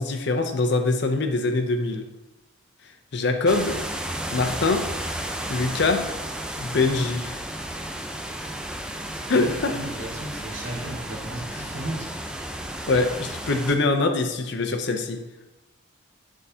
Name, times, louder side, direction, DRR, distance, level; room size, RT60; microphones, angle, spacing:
voice 1, 0.0-2.0 3.1-3.7 4.3-4.8 5.5-6.1 6.6-7.4 9.3-9.8 12.9-15.2, left 3 dB, 55° left, 5 dB, 0.6 m, -23 dB
sound 1, 3.5-13.8, right 1 dB, 5° right, 0.4 m, -33 dB
voice 2, 9.1-12.1, right 1 dB, 70° right, -3 dB, 1.9 m, -34 dB
11.0 x 3.7 x 2.8 m, 1.0 s
head